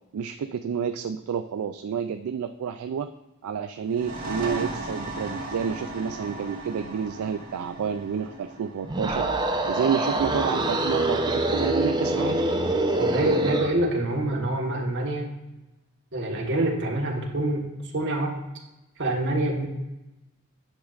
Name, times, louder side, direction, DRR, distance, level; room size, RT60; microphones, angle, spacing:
voice 1, 0.1-3.1 3.4-12.4, right 7 dB, 75° right, 8 dB, 0.3 m, -29 dB
sound 1, 3.8-11.2, right 1 dB, 40° right, 2.3 m, -37 dB
sound 2, 8.8-13.8, right 2 dB, 20° right, 0.6 m, -25 dB
voice 2, 13.0-15.3 16.1-18.3 19.0-19.7, right 1 dB, 55° right, 0 dB, 1.4 m, -26 dB
10.0 x 6.3 x 2.5 m, 0.99 s
head